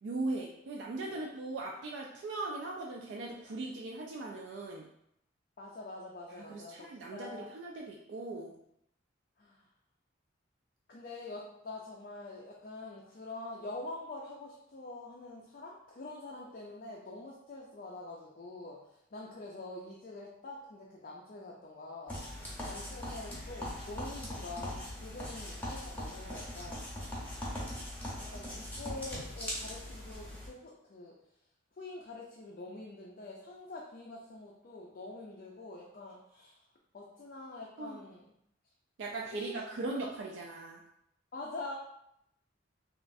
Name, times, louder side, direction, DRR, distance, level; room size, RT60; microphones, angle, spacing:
voice 1, 0.0-4.9 6.4-8.5 22.4-22.7 37.8-38.0 39.0-40.8, right 2 dB, 65° right, -1 dB, 0.3 m, -39 dB
voice 2, 5.6-7.5 9.4-9.6 10.9-18.8 19.1-22.2 22.6-26.9 27.7-27.9 28.3-31.1 31.8-36.6 36.9-38.3 39.3-39.5 41.3-41.7, left 2 dB, 45° left, -3 dB, 0.4 m, -45 dB
sound 1, 22.1-30.5, left 1 dB, 10° left, 0.6 m, -41 dB
3.1 x 2.4 x 2.5 m, 0.76 s
head